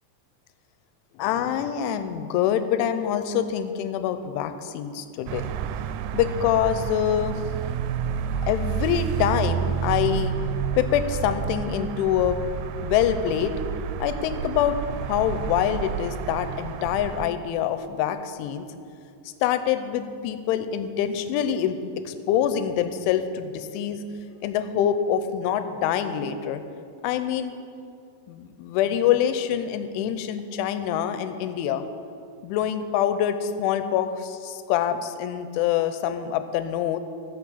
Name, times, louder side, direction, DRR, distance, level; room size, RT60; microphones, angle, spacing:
voice 1, 1.2-5.5 6.1-7.4 8.5-10.3 10.8-12.4 12.8-13.5 14.0-14.8 15.1-18.7 19.4-21.8 22.1-24.0 24.4-26.6 27.0-27.5 28.3-31.8 32.4-37.0, left 10 dB, 90° left, 10 dB, 3.0 m, -25 dB
sound 1, 5.3-17.3, right 8 dB, 90° right, 3.0 m, -30 dB
15.0 x 5.8 x 7.2 m, 2.5 s
omnidirectional pair, 5.5 m